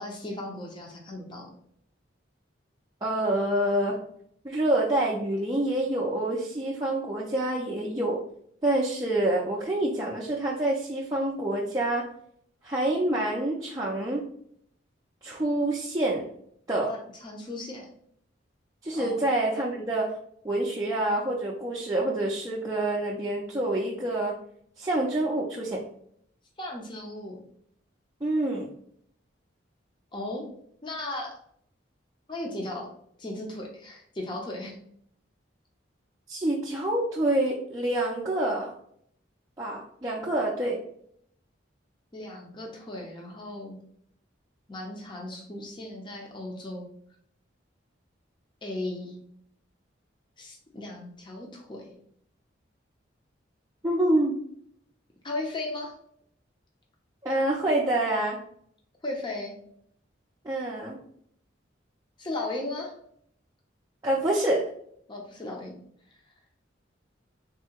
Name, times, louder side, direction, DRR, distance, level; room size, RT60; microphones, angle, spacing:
voice 1, 0.0-1.5 16.9-17.9 18.9-19.2 26.6-27.4 30.1-30.5 30.8-31.4 32.3-32.9 33.2-34.8 42.1-43.8 44.7-46.9 48.6-49.2 50.4-51.9 55.2-55.9 59.0-59.5 62.2-62.9 65.1-65.8, left 2 dB, 25° left, -1 dB, 0.6 m, -36 dB
voice 2, 3.0-4.0 4.4-8.2 8.6-12.1 12.6-14.3 15.2-16.3 16.7-16.9 18.8-20.2 20.4-24.4 24.8-25.8 28.2-28.7 36.3-38.8 39.6-40.8 53.8-54.4 57.2-58.4 60.4-61.0 64.0-64.7, right 1 dB, 20° right, -5 dB, 0.5 m, -27 dB
3.6 x 2.2 x 4.3 m, 0.66 s
head